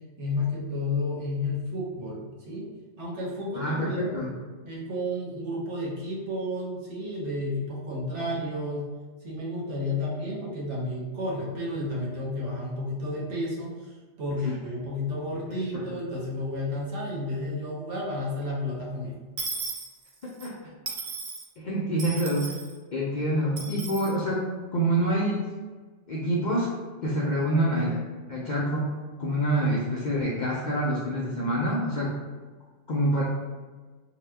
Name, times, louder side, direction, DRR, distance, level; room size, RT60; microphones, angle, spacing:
voice 1, 0.2-2.7 3.0-4.1 4.6-8.9 9.2-13.9 14.2-19.2, left 1 dB, 75° right, -4 dB, 1.1 m, -31 dB
voice 2, 3.6-4.3 14.5-14.6 15.7-15.8 20.4-20.5 21.6-22.5 22.9-24.5 24.7-25.5 26.1-26.7 27.0-28.0 28.3-28.9 29.2-32.1 32.9-33.2, right 1 dB, 60° left, -7 dB, 0.5 m, -26 dB
Dishes pots and pans / Coin (dropping), 19.4-20.5 20.9-21.4 22.0-22.7 23.6-24.1, right 4 dB, 50° right, 0.6 m, -35 dB
2.8 x 2.1 x 3.3 m, 1.4 s
omnidirectional pair, 1.3 m